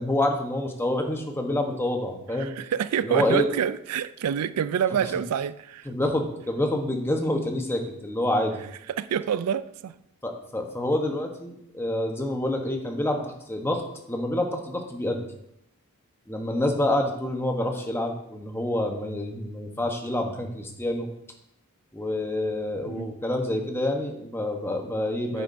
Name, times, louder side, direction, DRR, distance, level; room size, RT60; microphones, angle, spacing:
voice 1, 0.0-2.5 3.0-3.5 5.9-8.6 10.2-13.8 14.1-15.2 16.3-21.1 21.9-25.4, left 1 dB, 10° left, 3 dB, 0.9 m, -27 dB
voice 2, 2.4-5.9 8.9-9.9 22.9-23.1 25.3-25.4, right 8 dB, 85° right, 15 dB, 0.4 m, -27 dB
9.4 x 8.3 x 2.6 m, 0.77 s
head